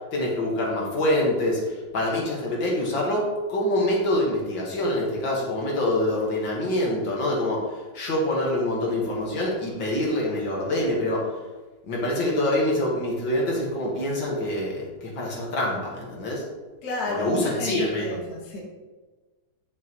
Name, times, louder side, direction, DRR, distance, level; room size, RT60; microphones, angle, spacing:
voice 1, 0.1-3.2 3.5-7.6 7.9-11.3 11.9-16.4 17.1-18.2, left 1 dB, 65° left, -3 dB, 2.3 m, -25 dB
voice 2, 16.8-18.6, left 2 dB, 50° left, -3 dB, 2.0 m, -30 dB
9.8 x 6.3 x 3.1 m, 1.3 s
omnidirectional pair, 2.2 m